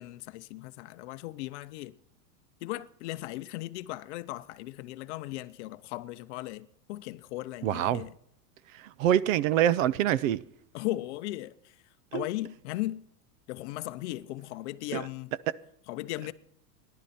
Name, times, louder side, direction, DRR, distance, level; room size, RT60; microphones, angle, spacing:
voice 1, 0.0-2.0 2.6-8.1 10.7-13.1 13.5-15.3 15.9-16.3, left 17 dB, 45° left, 0.7 m, -37 dB
voice 2, 7.6-8.0 8.7-10.5 12.1-12.3 14.9-15.1, right 11 dB, 55° right, 0.6 m, -26 dB
17.5 x 11.5 x 4.2 m
supercardioid pair, 155°, 48 cm